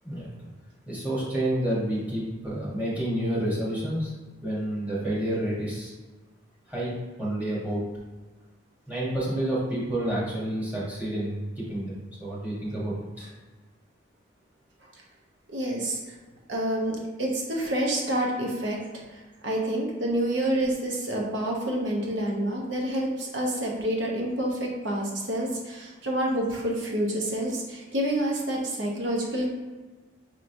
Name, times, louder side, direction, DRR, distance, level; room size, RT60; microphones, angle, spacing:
voice 1, 0.0-0.5 0.9-4.1 4.4-5.9 6.7-6.9 7.2-7.8 8.9-13.3, right 1 dB, 10° right, -7 dB, 1.1 m, -29 dB
voice 2, 15.5-16.2 16.5-29.5, right 1 dB, 60° right, -1 dB, 0.8 m, -28 dB
5.7 x 3.0 x 2.6 m, 1.3 s
head